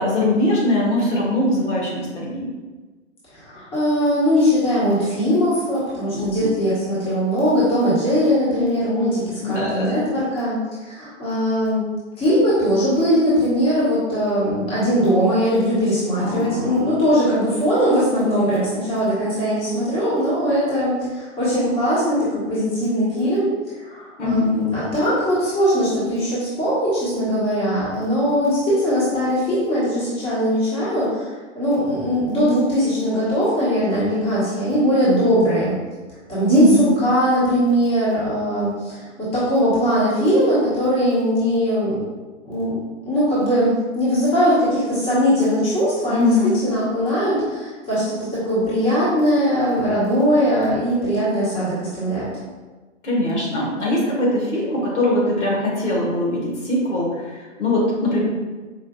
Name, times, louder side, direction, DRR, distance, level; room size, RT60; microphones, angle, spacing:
voice 1, 0.0-2.5 6.1-6.5 9.4-10.0 16.2-16.8 24.2-24.5 36.5-36.9 46.1-46.6 53.0-58.2, left 1 dB, 75° left, -4 dB, 1.4 m, -21 dB
voice 2, 3.3-11.8 12.2-23.5 23.8-35.7 36.3-42.0 42.4-42.8 43.1-46.3 46.6-52.3, equal, 15° left, -10 dB, 1.3 m, -20 dB
4.9 x 2.6 x 2.3 m, 1.3 s
hypercardioid pair, 140°, 37 cm